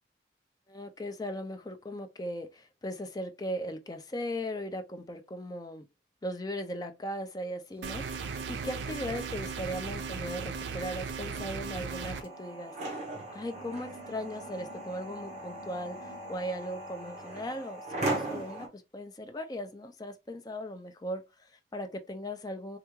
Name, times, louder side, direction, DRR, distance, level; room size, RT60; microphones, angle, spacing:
voice 1, 0.7-5.9 6.2-12.7 13.3-22.8, equal, 20° left, 0.4 m, -38 dB
sound 1, 7.6-12.3, right 1 dB, 5° right, 0.8 m, -56 dB
sound 2, 7.8-12.2, right 5 dB, 80° right, 0.4 m, -37 dB
sound 3, 11.9-18.7, right 2 dB, 40° right, 0.8 m, -38 dB
3.4 x 2.3 x 3.0 m
head